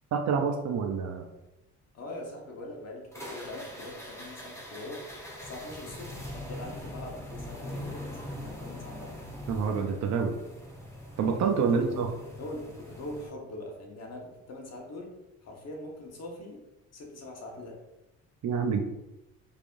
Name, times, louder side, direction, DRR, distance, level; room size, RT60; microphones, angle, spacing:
voice 1, 0.1-1.3 9.5-10.3 11.2-12.1 18.4-18.8, right 6 dB, 60° right, 3 dB, 0.7 m, -27 dB
voice 2, 1.9-5.0 5.4-9.1 11.6-12.0 12.4-15.1 15.4-16.6 16.9-17.8, left 1 dB, 55° left, 0 dB, 1.2 m, -42 dB
sound 1, 3.1-13.3, left 1 dB, 10° left, 1.3 m, -42 dB
4.7 x 3.5 x 2.6 m, 0.94 s
cardioid pair, 90°, 30 cm